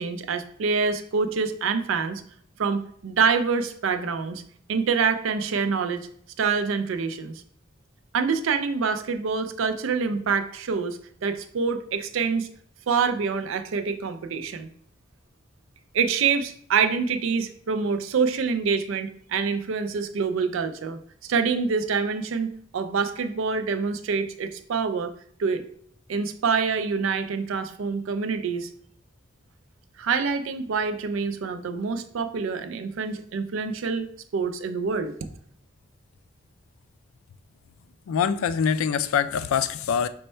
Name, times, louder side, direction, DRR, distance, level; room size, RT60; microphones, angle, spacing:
voice 1, 0.0-2.2 2.6-4.4 4.7-6.0 6.4-7.3 8.1-12.5 12.9-14.7 15.9-21.0 21.3-25.1 25.4-25.6 26.1-28.7 30.0-35.1, right 5 dB, 80° right, 10 dB, 0.4 m, -26 dB
voice 2, 38.1-40.1, left 7 dB, 90° left, 12 dB, 0.3 m, -24 dB
5.1 x 2.2 x 4.3 m, 0.63 s
head